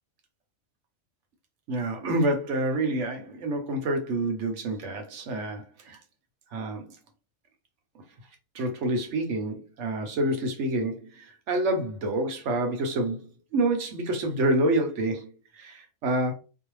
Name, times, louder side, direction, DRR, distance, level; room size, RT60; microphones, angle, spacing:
voice 1, 1.7-6.0 6.5-6.8 8.5-15.3 15.5-16.3, right 1 dB, 65° right, 0.9 m, -28 dB
2.5 x 2.0 x 3.0 m
omnidirectional pair, 1.4 m